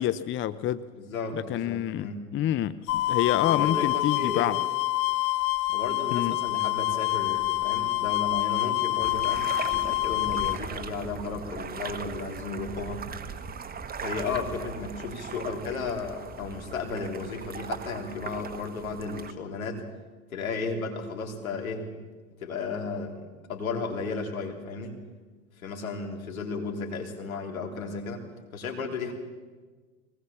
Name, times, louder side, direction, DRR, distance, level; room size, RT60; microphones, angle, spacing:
voice 1, 0.0-0.9 1.3-4.6 6.1-6.4, left 11 dB, 30° left, 16 dB, 0.7 m, -28 dB
voice 2, 0.9-2.2 3.4-4.5 5.7-13.0 14.0-19.8 20.3-21.9 22.4-23.2 23.5-25.0 25.6-28.2 28.5-29.1, left 4 dB, 80° left, 2 dB, 3.7 m, -34 dB
sound 1, 2.9-10.6, left 19 dB, 55° left, 1.2 m, -27 dB
sound 2, 9.0-19.3, right 6 dB, 20° right, 1.4 m, -39 dB
22.5 x 19.0 x 7.2 m, 1.4 s
hypercardioid pair, 90°, 41 cm